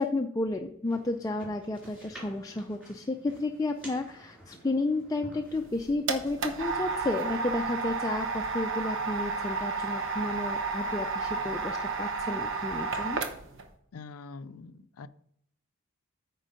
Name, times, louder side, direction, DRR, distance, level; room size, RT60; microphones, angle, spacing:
voice 1, 0.0-13.2, left 2 dB, 15° left, 4 dB, 0.4 m, -32 dB
sound 1, 0.8-8.0, equal, 5° right, 3.7 m, -52 dB
sound 2, 5.5-13.6, right 4 dB, 60° right, 1.0 m, -32 dB
voice 2, 13.9-15.1, left 4 dB, 85° left, 14 dB, 0.5 m, -44 dB
9.1 x 4.5 x 5.2 m, 0.72 s
head